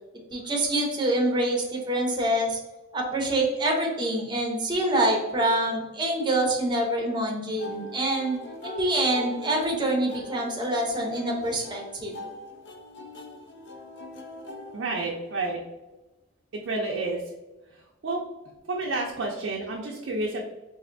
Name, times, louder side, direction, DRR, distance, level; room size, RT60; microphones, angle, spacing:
voice 1, 0.3-2.6 2.9-12.3, right 1 dB, 20° right, 0 dB, 0.7 m, -26 dB
sound 1, 7.6-15.5, left 2 dB, 55° left, 0.5 m, -42 dB
voice 2, 14.7-15.6 16.6-17.2 17.7-18.2 18.7-20.4, right 2 dB, 65° right, -1 dB, 0.4 m, -30 dB
4.1 x 2.5 x 2.5 m, 1.1 s
head